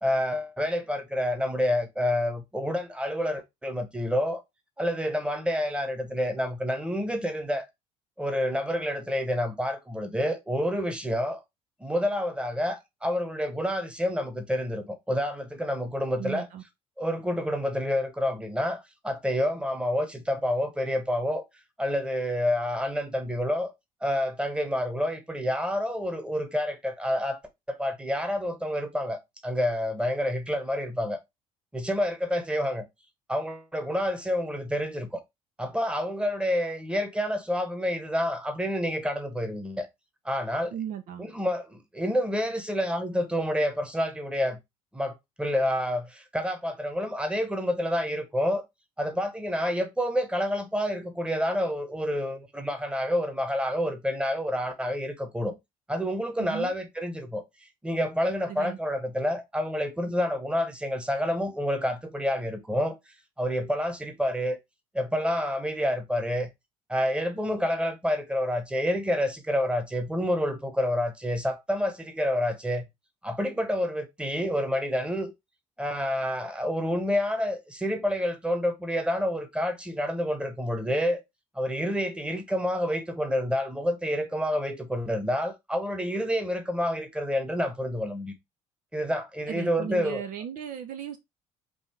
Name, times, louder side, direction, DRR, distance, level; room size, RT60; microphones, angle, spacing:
voice 1, 0.0-4.4 4.8-7.7 8.2-11.4 11.8-16.5 17.0-21.4 21.8-23.7 24.0-27.4 27.7-31.2 31.7-32.8 33.3-35.2 35.6-39.9 40.2-40.7 41.2-44.6 44.9-48.6 49.0-55.5 55.9-57.4 57.8-62.9 63.4-64.6 64.9-66.5 66.9-72.9 73.2-75.3 75.8-81.2 81.5-88.3 88.9-90.2, equal, 5° right, 1.2 m, -28 dB
voice 2, 16.2-16.6 40.7-41.2 56.4-56.7 58.5-58.8 89.5-91.2, right 9 dB, 55° right, 0.6 m, -36 dB
5.3 x 2.7 x 3.3 m
figure-of-eight pair, 55°, 17 cm